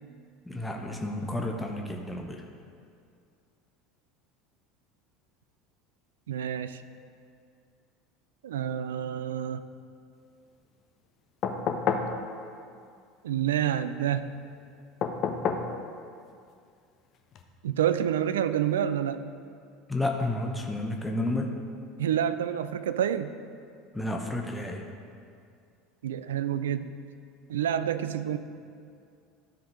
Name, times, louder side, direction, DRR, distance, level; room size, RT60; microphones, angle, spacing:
voice 1, 0.5-2.4 19.9-21.5 23.9-24.9, left 1 dB, 5° left, 1 dB, 0.9 m, -31 dB
voice 2, 6.3-6.8 8.4-9.6 13.2-14.3 17.6-19.2 22.0-23.4 26.0-26.9 27.5-28.4, right 10 dB, 65° right, 12 dB, 0.3 m, -28 dB
sound 1, 11.4-12.1 15.0-15.7 17.3-17.4, left 6 dB, 40° left, 0.7 m, -28 dB
12.5 x 5.3 x 4.9 m, 2.3 s
figure-of-eight pair, 70°, 0 cm